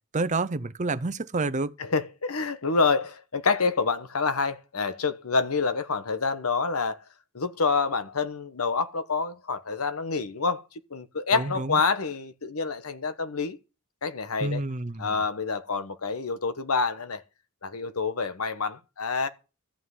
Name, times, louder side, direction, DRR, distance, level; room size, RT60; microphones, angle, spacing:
voice 1, 0.1-1.7 11.3-11.8 14.4-15.2, right 3 dB, 35° right, 0.7 m, -29 dB
voice 2, 1.8-7.0 7.3-13.6 14.0-14.6 15.0-17.2 17.6-19.3, left 4 dB, 80° left, 1.2 m, -27 dB
14.0 x 5.7 x 9.6 m
head